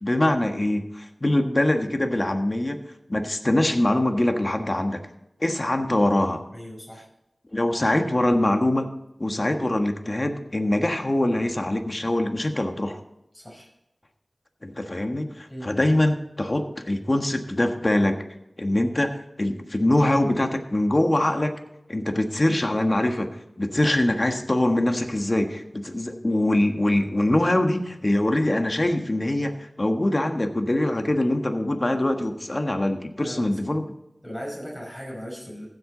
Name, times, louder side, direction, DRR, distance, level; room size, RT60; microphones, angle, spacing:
voice 1, 0.0-2.8 3.1-5.0 5.4-6.4 7.5-8.9 9.2-13.0 14.6-18.2 18.6-21.6 21.9-23.3 23.6-33.9, left 1 dB, 40° left, 5 dB, 1.5 m, -23 dB
voice 2, 6.5-7.1 9.4-9.6 13.3-13.7 15.5-15.7 23.8-23.9 33.2-33.5 34.2-35.7, equal, 10° left, -3 dB, 5.3 m, -37 dB
15.5 x 8.0 x 4.0 m, 0.86 s
wide cardioid pair, 40°, 0 cm